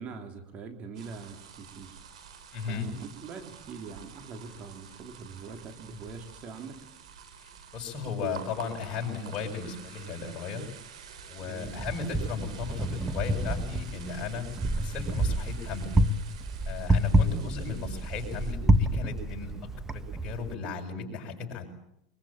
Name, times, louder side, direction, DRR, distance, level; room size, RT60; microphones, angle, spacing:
voice 1, 0.0-2.0 2.7-6.8 11.4-11.7 17.2-17.5, right 5 dB, 40° right, 6 dB, 3.3 m, -43 dB
sound 1, 0.9-18.5, right 7 dB, 80° right, 4.5 m, -49 dB
voice 2, 2.5-2.9 7.4-10.6 11.3-14.5 14.8-15.9 16.7-21.7, left 5 dB, 40° left, 0 dB, 7.3 m, -36 dB
Wind, 11.6-20.5, right 1 dB, 15° right, 1.4 m, -28 dB
24.0 x 22.5 x 8.9 m, 0.79 s
hypercardioid pair, 105°, 3 cm